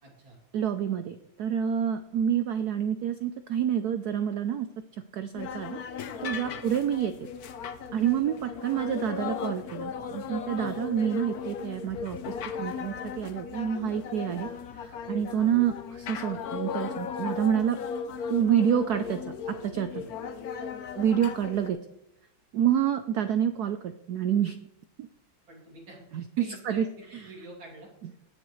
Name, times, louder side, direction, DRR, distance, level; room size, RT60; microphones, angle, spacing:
voice 1, 0.0-0.4 6.4-6.6 10.5-10.8 19.9-20.1 25.5-26.0 26.4-26.9 27.2-27.9, right 1 dB, 60° right, -1 dB, 3.5 m, -46 dB
voice 2, 0.5-4.7 5.1-5.8 6.2-7.3 7.9-14.5 14.7-17.8 18.3-19.9 21.0-21.8 22.5-24.6 25.0-25.1 26.1-26.9, right 9 dB, 85° right, 9 dB, 0.8 m, -28 dB
sound 1, 5.3-21.7, left 6 dB, 60° left, 1.0 m, -36 dB
18.5 x 7.5 x 3.2 m, 0.82 s
omnidirectional pair, 2.3 m